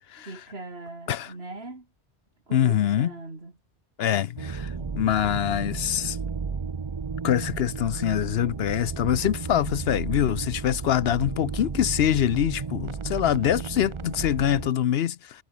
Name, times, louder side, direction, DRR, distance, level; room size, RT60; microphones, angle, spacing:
voice 1, 0.2-1.9 2.5-3.5 13.3-13.7, right 2 dB, 65° right, 3.7 m, -40 dB
voice 2, 2.5-3.1 4.0-6.2 7.2-15.4, left 10 dB, 70° left, 0.9 m, -24 dB
sound 1, 4.4-14.7, right 5 dB, 30° right, 0.7 m, -33 dB
omnidirectional pair, 1.1 m